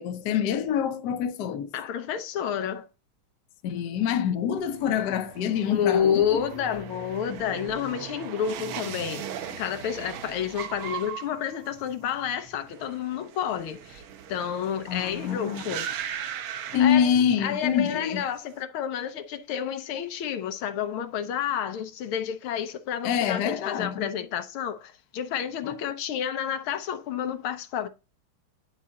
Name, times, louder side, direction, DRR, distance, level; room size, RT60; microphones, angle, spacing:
voice 1, 0.0-1.7 3.6-6.4 7.3-7.4 14.9-15.6 16.7-18.2 23.0-24.1 25.6-25.8, left 8 dB, 65° left, 1.1 m, -26 dB
voice 2, 1.7-2.9 5.7-9.3 9.6-14.0 14.3-15.9 16.8-17.1 17.4-27.9, left 9 dB, 85° left, 1.7 m, -30 dB
sound 1, 4.6-17.7 17.9-18.5, right 8 dB, 75° right, 1.5 m, -39 dB
9.8 x 4.1 x 3.7 m
omnidirectional pair, 2.3 m